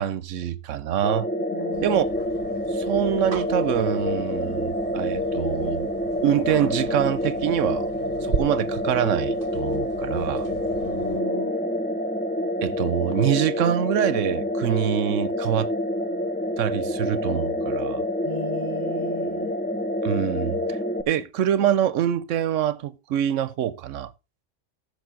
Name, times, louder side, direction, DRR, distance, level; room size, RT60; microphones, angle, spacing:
voice 1, 0.0-1.3 1.8-2.2 2.7-5.9 6.2-7.9 8.2-10.5 12.6-15.7 16.6-18.0 20.0-20.8 21.1-24.1, right 10 dB, 90° right, 1.1 m, -25 dB
sound 1, 1.0-21.0, left 1 dB, 10° left, 0.6 m, -27 dB
voice 2, 1.5-2.0 10.1-11.5 18.2-19.5, left 3 dB, 30° left, 1.3 m, -35 dB
sound 2, 1.7-11.2, right 6 dB, 50° right, 1.0 m, -38 dB
14.0 x 6.8 x 3.8 m
omnidirectional pair, 1.3 m